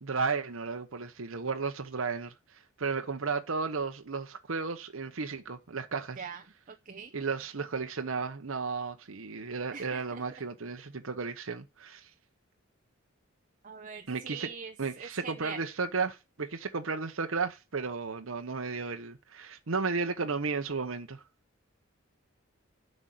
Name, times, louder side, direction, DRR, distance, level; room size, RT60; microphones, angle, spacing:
voice 1, 0.0-2.3 2.8-6.3 7.1-12.1 14.1-14.5 14.8-21.2, right 4 dB, 70° right, 0.9 m, -34 dB
voice 2, 6.7-7.1 9.7-10.2 13.6-15.6, right 6 dB, 40° right, 0.7 m, -43 dB
8.1 x 5.4 x 7.7 m
head